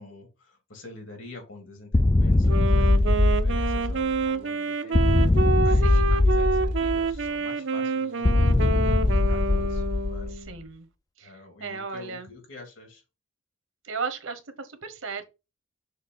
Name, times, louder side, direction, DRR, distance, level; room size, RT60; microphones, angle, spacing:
voice 1, 0.0-10.3 11.2-13.0, left 2 dB, 70° left, 2.6 m, -46 dB
sound 1, 1.9-4.2 4.9-7.2 8.3-10.5, left 2 dB, 20° left, 0.3 m, -21 dB
Wind instrument woodwind instrument, 2.5-10.5, right 3 dB, 60° right, 0.5 m, -28 dB
voice 2, 5.8-6.2 10.5-10.9 11.2-11.3 11.6-12.3 13.8-15.3, right 4 dB, 80° right, 1.2 m, -35 dB
6.5 x 2.8 x 5.5 m
head